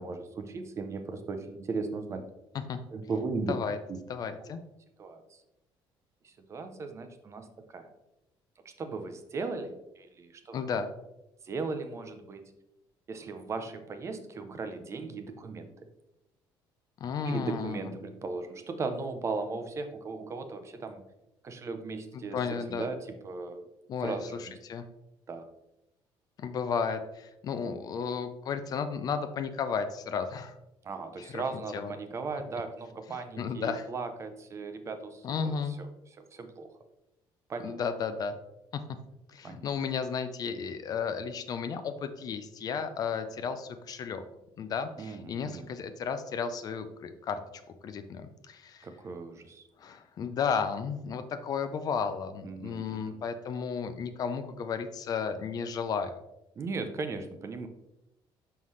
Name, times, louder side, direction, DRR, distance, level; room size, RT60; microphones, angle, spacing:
voice 1, 0.0-2.3 2.9-3.5 3.9-4.0 5.0-5.4 6.2-7.5 7.7-7.9 8.6-10.5 11.4-12.5 13.1-15.7 17.2-21.0 21.4-23.7 24.0-24.6 25.3-25.5 30.8-35.9 36.2-36.8 37.5-37.8 39.4-39.7 45.0-45.7 48.8-49.6 52.4-53.2 56.6-57.7, right 4 dB, 30° right, 8 dB, 0.6 m, -37 dB
voice 2, 4.1-4.6 10.5-10.9 17.0-17.9 22.1-22.9 23.9-24.8 26.4-30.6 31.2-31.4 31.7-31.9 33.1-33.9 35.2-35.7 37.6-38.4 38.7-38.8 39.3-44.2 44.6-47.4 47.8-48.9 49.8-56.2, left 6 dB, 45° left, 9 dB, 0.5 m, -33 dB
5.6 x 5.5 x 3.2 m, 0.88 s
cardioid pair, 145°, 9 cm